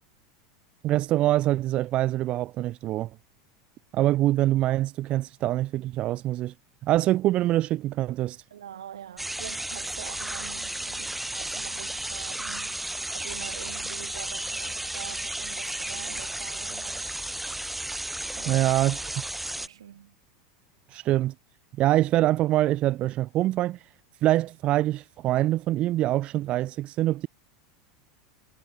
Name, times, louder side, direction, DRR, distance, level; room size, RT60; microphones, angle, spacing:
voice 1, 0.8-3.1 3.9-6.5 6.8-8.4 18.5-19.0 20.9-21.3 21.8-23.8 24.2-27.3, right 15 dB, 45° right, 2.2 m, -24 dB
voice 2, 8.5-17.2 18.3-18.7 19.4-20.2, right 10 dB, 90° right, 7.3 m, -44 dB
sound 1, 9.2-19.7, right 1 dB, 5° right, 2.4 m, -33 dB
hypercardioid pair, 100°, 3 cm